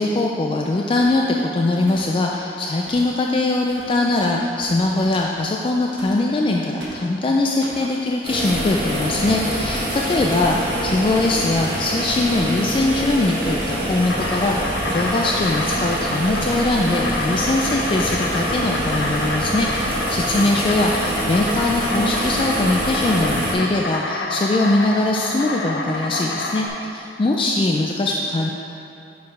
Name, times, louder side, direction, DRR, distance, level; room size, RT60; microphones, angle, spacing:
voice 1, 0.0-28.5, left 2 dB, 30° left, 0 dB, 0.3 m, -21 dB
sound 1, 1.0-1.3 1.9-2.3 2.9-3.2 3.7-4.0 4.6-4.9 6.0-6.2 6.8-7.1 7.6-7.9 8.5-8.7 9.2-9.5, right 1 dB, 80° right, 1.3 m, -39 dB
sound 2, 8.2-23.5, right 1 dB, 30° right, 1.4 m, -25 dB
Insect, 14.0-26.7, left 2 dB, 80° left, 0.7 m, -28 dB
6.5 x 4.6 x 4.7 m, 2.7 s
head